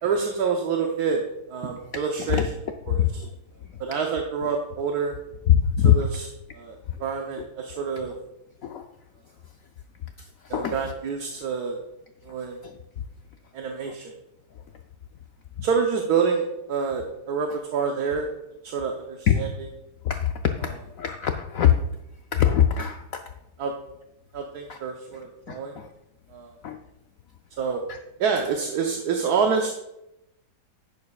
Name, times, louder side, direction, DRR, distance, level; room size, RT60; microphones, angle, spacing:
voice 1, 0.0-2.4 2.9-3.3 3.8-5.1 5.8-6.3 6.5-8.2 10.5-11.8 12.2-12.6 13.5-14.1 15.6-18.3 18.6-19.5 23.6-23.7 24.3-25.8 26.3-26.5 27.6-27.8 28.2-29.7, right 5 dB, 60° right, 2 dB, 1.3 m, -27 dB
voice 2, 2.9-3.2 5.5-6.0 8.6-8.9 10.2-10.8 12.6-12.7 13.9-14.0 15.6-15.7 19.3-19.5 20.0-20.3 20.6-21.7 22.3-23.2 24.7-24.8 25.5-25.9 26.6-26.8 27.9-28.0, left 9 dB, 90° left, 5 dB, 0.7 m, -23 dB
11.0 x 9.6 x 2.4 m, 0.89 s
omnidirectional pair, 2.1 m